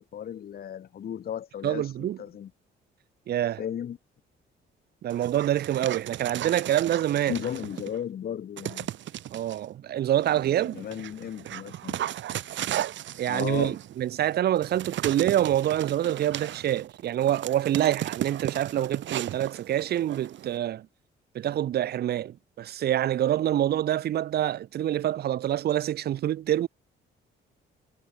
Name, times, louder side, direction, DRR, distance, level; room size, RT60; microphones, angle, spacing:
voice 1, 0.0-2.5 3.6-4.0 7.2-8.9 10.6-12.0 13.3-13.7, left 9 dB, 50° left, 0.9 m, -35 dB
voice 2, 1.6-2.2 3.3-3.6 5.0-7.4 9.3-10.8 13.2-20.9 21.3-26.7, right 12 dB, 55° right, 0.5 m, -26 dB
Dog, 5.1-8.0 8.6-9.6 10.2-20.6, right 12 dB, 70° right, 1.2 m, -36 dB
cardioid pair, 90°, 20 cm